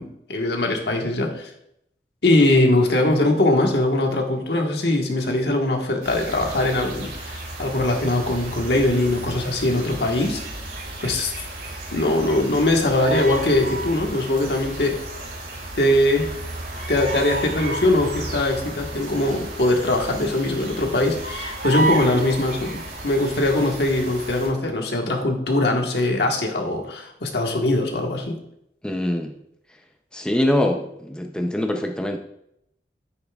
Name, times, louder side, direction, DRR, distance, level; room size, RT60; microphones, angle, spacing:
voice 1, 0.0-1.5 2.2-10.4 11.0-11.3 11.9-15.0 15.8-16.3 16.9-28.4, left 1 dB, 65° left, 2 dB, 1.4 m, -21 dB
sound 1, 6.0-24.5, right 2 dB, 60° right, 3.4 m, -32 dB
voice 2, 28.8-29.3 30.1-32.2, left 1 dB, 5° left, 3 dB, 0.5 m, -23 dB
10.0 x 9.2 x 2.4 m, 0.76 s
head